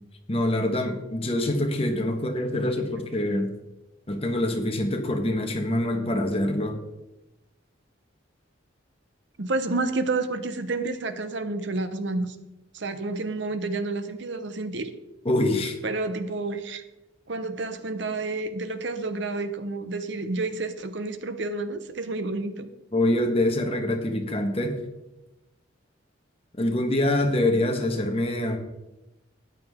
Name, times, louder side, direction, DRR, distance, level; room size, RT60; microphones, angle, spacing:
voice 1, 0.3-3.5 4.1-6.8 15.2-15.7 22.9-24.8 26.6-28.6, left 1 dB, 30° left, 4 dB, 1.3 m, -25 dB
voice 2, 9.4-12.4 12.7-14.9 15.8-16.8 17.3-22.7, right 3 dB, 65° right, 10 dB, 0.8 m, -30 dB
13.5 x 9.4 x 3.6 m, 0.98 s
head